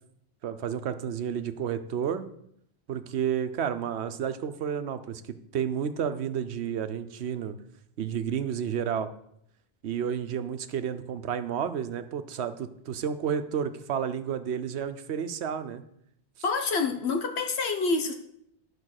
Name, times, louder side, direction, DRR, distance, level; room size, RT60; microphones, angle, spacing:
voice 1, 0.4-2.3 2.9-5.2 5.5-7.6 8.0-9.1 9.8-15.8, right 8 dB, 85° right, 10 dB, 1.0 m, -31 dB
voice 2, 16.4-18.1, left 4 dB, 75° left, 6 dB, 1.3 m, -27 dB
11.0 x 4.8 x 6.4 m, 0.72 s
omnidirectional pair, 1.1 m